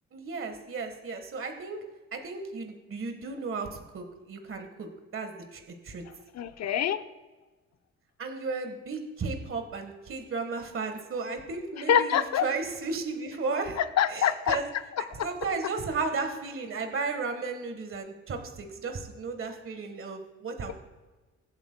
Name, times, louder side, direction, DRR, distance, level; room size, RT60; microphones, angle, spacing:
voice 1, 0.1-1.8 2.1-6.0 8.2-13.8 14.1-14.7 15.2-20.7, right 4 dB, 45° right, 6 dB, 1.4 m, -34 dB
voice 2, 6.3-7.0 11.9-12.4 13.8-14.6, left 9 dB, 60° left, 10 dB, 0.8 m, -25 dB
22.0 x 8.0 x 2.2 m, 1.2 s
cardioid pair, 90°, 30 cm